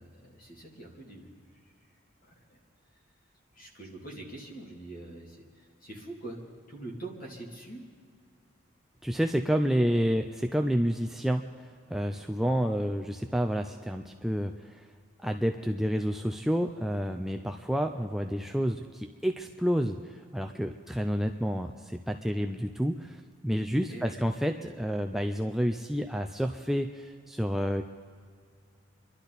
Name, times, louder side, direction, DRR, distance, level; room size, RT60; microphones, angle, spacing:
voice 1, 0.0-1.7 2.2-2.6 3.5-6.4 6.7-7.8 9.7-9.9 12.4-12.6 23.9-24.2, right 2 dB, 45° left, -1 dB, 2.8 m, -44 dB
voice 2, 9.0-14.9 15.2-23.2 23.4-27.8, equal, ahead, 4 dB, 0.4 m, -29 dB
28.0 x 12.0 x 4.1 m, 2.1 s
head